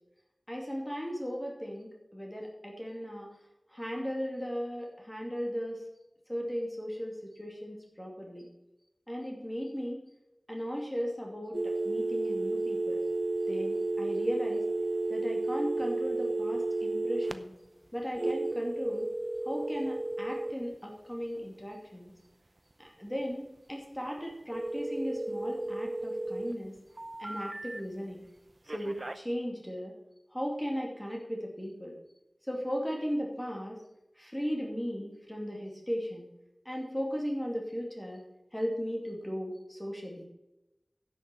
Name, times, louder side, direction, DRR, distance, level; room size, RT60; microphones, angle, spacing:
voice 1, 0.5-3.3 3.7-5.8 6.3-8.5 9.1-10.0 10.5-13.0 13.5-14.6 15.1-17.5 17.9-19.1 19.5-22.1 22.8-26.7 27.2-28.2 28.7-29.9 30.3-31.9 32.5-33.8 34.2-36.3 36.7-38.2 38.5-40.3, equal, 10° left, -1 dB, 2.5 m, -36 dB
sound 1, 11.5-17.3 18.2-20.5 24.5-26.5 27.0-27.8 28.7-29.2, right 2 dB, 40° right, 0.7 m, -33 dB
10.0 x 6.5 x 6.1 m, 0.93 s
wide cardioid pair, 50°, 0 cm